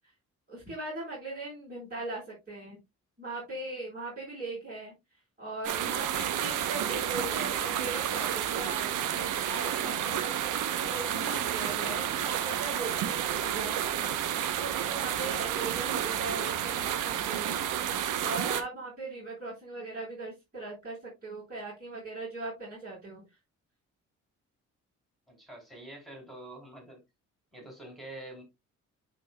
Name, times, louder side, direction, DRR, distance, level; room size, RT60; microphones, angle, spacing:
voice 1, 0.5-2.8 3.2-4.9 5.4-14.3 14.6-17.6 18.2-23.2, right 2 dB, 30° right, 4.6 m, -39 dB
sound 1, 5.6-18.6, right 10 dB, 90° right, 0.9 m, -31 dB
voice 2, 25.3-27.0 27.5-28.4, right 1 dB, ahead, 3.6 m, -46 dB
10.5 x 4.1 x 2.3 m
cardioid pair, 90°, 30 cm